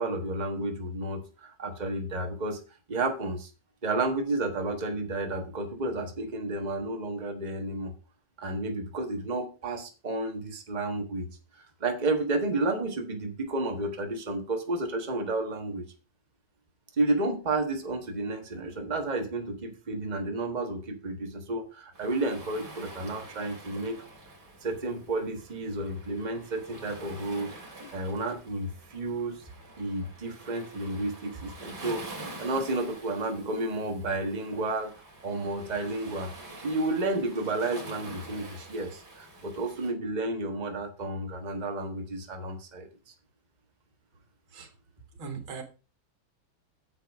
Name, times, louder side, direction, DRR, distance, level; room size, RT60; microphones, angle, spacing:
voice 1, 0.0-2.6 2.9-3.5 3.8-7.9 8.4-11.3 11.5-15.8 17.0-24.0 24.6-27.5 27.9-29.4 29.8-34.9 35.2-36.3 36.6-42.9, right 2 dB, 25° right, 3 dB, 1.5 m, -31 dB
Waves surf, 21.9-39.9, right 2 dB, 55° right, 3.6 m, -46 dB
voice 2, 45.2-45.6, right 5 dB, 85° right, 6 dB, 2.6 m, -38 dB
8.9 x 7.3 x 4.8 m, 0.33 s
omnidirectional pair, 2.2 m